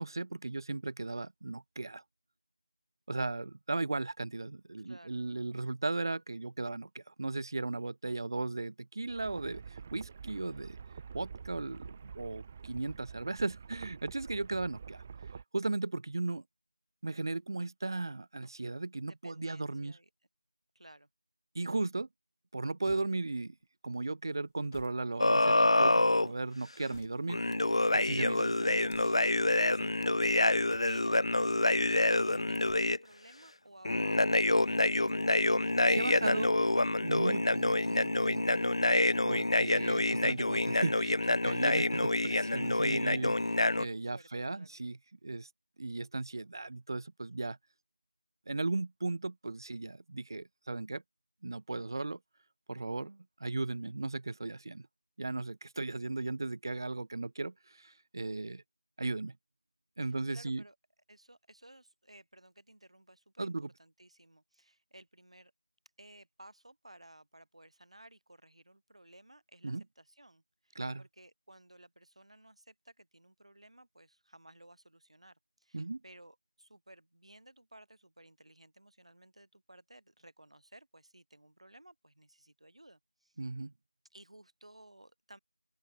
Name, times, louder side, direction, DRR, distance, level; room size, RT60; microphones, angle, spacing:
voice 1, 0.0-2.0 3.1-10.8 11.1-15.0 15.5-16.4 17.0-20.0 21.5-22.1 22.5-23.5 23.8-27.4 27.9-29.2 29.8-30.3 35.9-36.5 37.0-38.6 39.2-45.5 45.8-47.6 48.5-51.0 51.4-52.2 52.7-54.9 55.2-58.6 59.0-59.3 60.0-60.6 63.4-63.7 69.6-69.8 70.8-71.0 75.7-76.0 83.4-83.7, right 3 dB, 40° right, 0.9 m, -36 dB
voice 2, 4.8-5.2 19.0-20.1 20.7-21.1 30.8-35.2 39.1-39.4 44.1-44.3 44.5-44.8 60.0-60.8 61.1-65.5 66.0-83.4 84.1-85.4, right 1 dB, 75° right, 6.0 m, -57 dB
sound 1, 9.1-15.4, right 6 dB, 15° right, 0.5 m, -47 dB
sound 2, 22.8-23.6 24.4-25.8 26.5-27.5 28.7-29.3 30.5-31.2 32.4-33.3 34.8-35.8 36.7-37.6 38.8-39.4 39.7-39.8 40.8-41.6, left 5 dB, 25° left, 2.5 m, -58 dB
sound 3, 25.2-26.3 27.3-33.0 33.8-43.8, left 2 dB, 65° left, 0.5 m, -27 dB
open air
figure-of-eight pair, 170°, 3 cm